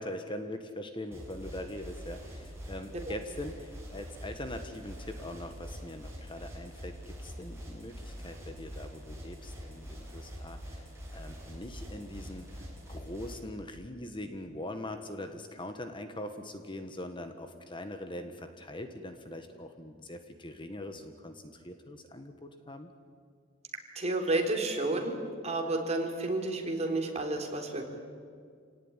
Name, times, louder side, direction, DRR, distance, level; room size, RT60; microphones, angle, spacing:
voice 1, 0.0-10.8 11.1-12.6 12.9-22.9, left 1 dB, 25° left, 7 dB, 1.5 m, -42 dB
sound 1, 1.1-13.3, equal, 15° right, 7.1 m, -44 dB
voice 2, 24.0-25.2 25.4-27.9, right 2 dB, 35° right, 2 dB, 3.7 m, -31 dB
28.0 x 18.0 x 9.8 m, 2.1 s
head